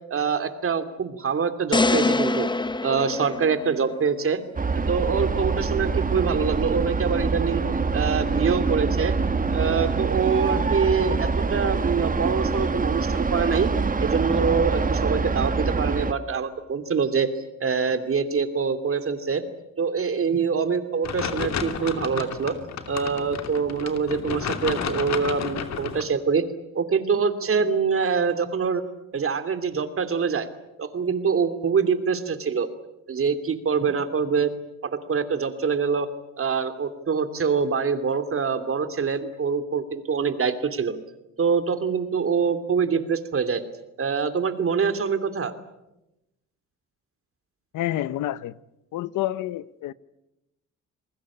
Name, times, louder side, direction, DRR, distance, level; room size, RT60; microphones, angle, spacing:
voice 1, 0.1-2.5 2.8-4.4 4.9-7.6 7.9-9.1 9.5-13.7 14.0-19.4 19.8-22.5 22.9-26.4 26.7-28.8 29.1-30.5 30.8-32.7 33.1-34.5 34.8-36.1 36.4-41.0 41.4-43.6 44.0-45.5, right 6 dB, 45° right, 2.8 m, -25 dB
sound 1, 1.7-4.0, left 3 dB, 15° left, 0.9 m, -24 dB
sound 2, 4.6-16.1, right 4 dB, 25° right, 1.8 m, -25 dB
sound 3, 21.0-26.0, left 7 dB, 60° left, 2.8 m, -31 dB
voice 2, 47.7-48.5 48.9-49.9, left 14 dB, 80° left, 0.9 m, -28 dB
28.5 x 20.5 x 8.6 m
cardioid pair, 90°, 30 cm